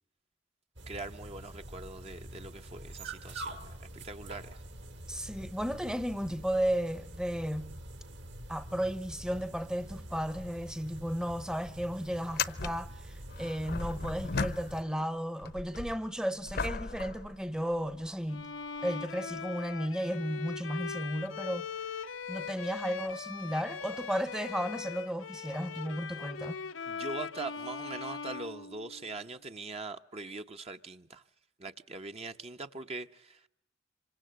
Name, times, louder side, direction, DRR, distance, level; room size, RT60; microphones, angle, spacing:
sound 1, 0.8-14.8, right 1 dB, 65° right, 3.0 m, -46 dB
voice 1, 0.9-3.6 3.9-4.6 26.9-31.2 31.6-33.5, right 3 dB, 30° right, 0.9 m, -42 dB
voice 2, 5.1-7.7 8.5-18.5 18.8-21.7 22.3-26.6, equal, 5° right, 0.9 m, -34 dB
sound 2, 10.9-11.0 11.3-11.4 12.2-15.1 15.4-18.1 18.8-18.9 23.0-23.1 24.5-24.6, left 4 dB, 55° left, 0.9 m, -37 dB
Bowed string instrument, 18.3-29.3, left 5 dB, 90° left, 1.0 m, -40 dB
27.0 x 25.0 x 7.6 m
head